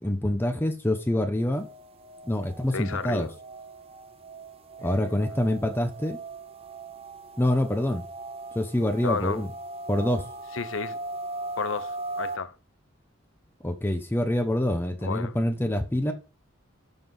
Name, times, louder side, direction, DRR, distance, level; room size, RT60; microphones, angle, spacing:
voice 1, 0.0-1.7 2.2-3.3 4.8-6.2 7.4-8.0 8.5-9.5 9.9-10.3 13.6-16.1, left 1 dB, 10° left, 0.9 m, -26 dB
sound 1, 1.5-12.4, right 2 dB, 30° right, 0.6 m, -39 dB
voice 2, 2.7-3.3 4.8-5.3 9.0-9.4 10.5-11.0 11.6-12.5 15.0-15.4, left 5 dB, 80° left, 0.8 m, -32 dB
7.1 x 5.9 x 5.5 m
head